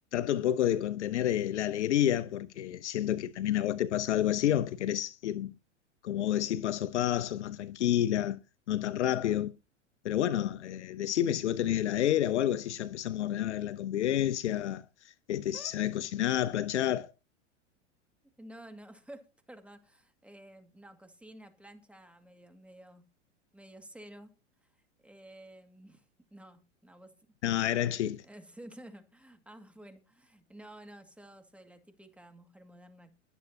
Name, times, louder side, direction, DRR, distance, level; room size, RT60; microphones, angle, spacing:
voice 1, 0.1-5.5 6.0-8.4 8.7-9.5 10.0-14.8 15.3-17.1 27.4-28.2, left 11 dB, 70° left, 0.9 m, -29 dB
voice 2, 18.4-23.1 23.5-24.3 25.0-26.1 26.3-27.1 27.8-33.1, right 1 dB, 5° right, 2.2 m, -52 dB
21.5 x 8.2 x 2.9 m
hypercardioid pair, 100°, 36 cm